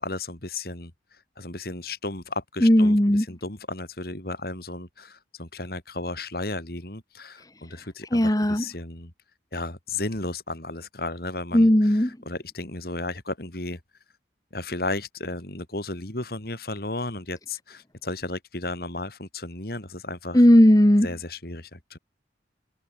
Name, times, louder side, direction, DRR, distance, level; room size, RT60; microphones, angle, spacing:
voice 1, 0.0-9.1 9.5-13.8 14.5-20.5 21.0-22.0, left 2 dB, 55° left, 3.3 m, -34 dB
voice 2, 2.6-3.2 8.1-8.6 11.5-12.1 20.3-21.1, equal, 20° left, 1.3 m, -16 dB
head